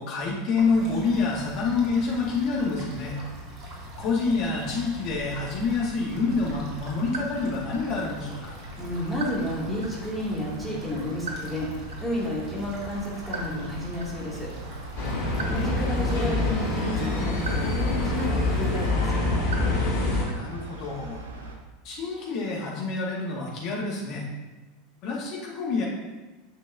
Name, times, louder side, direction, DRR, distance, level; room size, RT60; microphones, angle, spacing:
voice 1, 0.0-3.2 4.0-8.5 15.4-15.7 20.3-21.2 21.8-24.3 25.0-25.8, left 4 dB, 45° left, -3 dB, 2.1 m, -27 dB
sound 1, 0.6-18.9, equal, 40° right, 2.0 m, -41 dB
sound 2, 6.1-21.6, right 3 dB, 70° right, 0.9 m, -40 dB
voice 2, 8.8-11.7 12.0-14.5 15.5-19.4, left 1 dB, ahead, -6 dB, 2.6 m, -31 dB
sound 3, 15.0-20.2, left 2 dB, 60° left, 2.3 m, -26 dB
9.5 x 6.2 x 2.8 m, 1.2 s
figure-of-eight pair, 80°, 0 cm